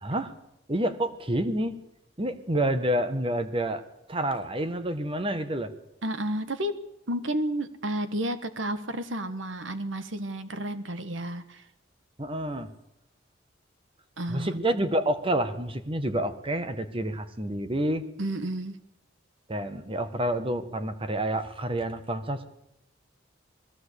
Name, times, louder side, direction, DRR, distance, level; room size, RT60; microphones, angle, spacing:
voice 1, 0.0-0.3 0.7-1.7 2.2-3.8 4.1-5.7 12.2-12.7 14.3-18.0 19.5-22.4, right 1 dB, 30° right, 10 dB, 1.6 m, -28 dB
voice 2, 6.0-6.7 7.1-11.6 14.2-14.6 18.2-18.8, right 1 dB, 85° right, 12 dB, 1.5 m, -31 dB
20.5 x 15.5 x 8.4 m, 0.85 s
head